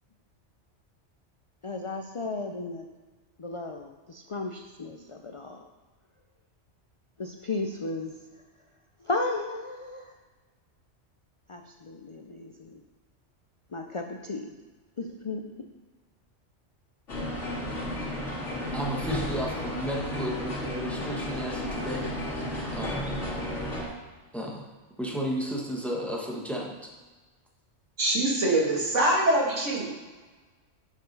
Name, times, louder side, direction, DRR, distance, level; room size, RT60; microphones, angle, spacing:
voice 1, 1.6-2.9 3.4-5.7 7.2-8.2 9.0-10.1 11.5-12.8 13.7-14.6 15.0-15.4, left 3 dB, 45° left, 4 dB, 0.4 m, -34 dB
sound 1, 17.1-23.8, left 1 dB, 75° left, 2.5 m, -33 dB
voice 2, 18.7-23.2 24.3-24.7 25.0-26.9, equal, ahead, -2 dB, 1.2 m, -34 dB
voice 3, 28.0-29.9, right 1 dB, 80° right, -2 dB, 2.1 m, -24 dB
7.1 x 7.0 x 5.3 m, 1.3 s
omnidirectional pair, 1.2 m